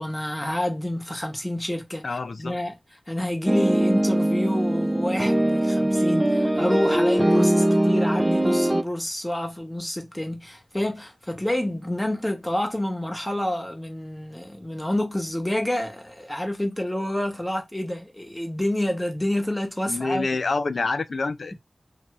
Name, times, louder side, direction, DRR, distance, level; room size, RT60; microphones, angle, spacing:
voice 1, 0.0-2.0 2.4-2.7 3.1-20.3, left 1 dB, 15° left, 1.1 m, -28 dB
voice 2, 2.0-2.6 19.9-21.6, left 3 dB, 80° left, 0.4 m, -27 dB
sound 1, 3.5-8.8, right 1 dB, 20° right, 0.5 m, -21 dB
2.8 x 2.3 x 2.9 m
cardioid pair, 40°, 0 cm